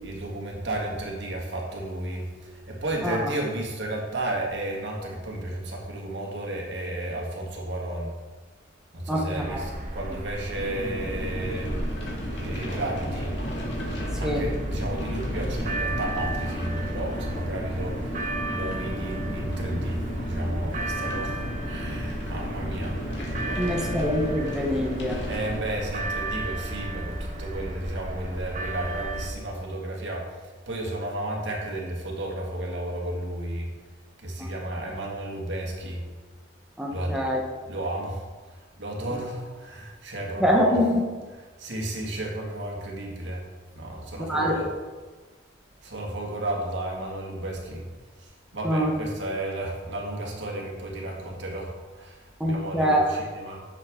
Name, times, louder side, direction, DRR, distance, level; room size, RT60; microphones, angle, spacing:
voice 1, 0.0-8.1 8.9-11.7 12.4-13.3 14.2-18.2 18.5-23.0 23.4-23.8 25.3-33.7 34.2-36.0 36.9-37.2 37.6-40.9 41.3-43.4 43.8-44.7 45.8-47.8 48.2-53.6, right 1 dB, 70° right, -2 dB, 2.0 m, -33 dB
voice 2, 9.1-9.6 14.2-14.5 23.6-25.2 34.4-34.5 36.8-37.4 40.4-41.0 44.2-44.6 48.6-48.9 52.4-53.0, equal, 5° right, -2 dB, 1.0 m, -24 dB
sound 1, 9.3-29.3, right 1 dB, 45° right, 1.1 m, -34 dB
sound 2, 10.6-25.6, equal, 65° left, 1.9 m, -33 dB
10.0 x 6.9 x 3.7 m, 1.3 s
head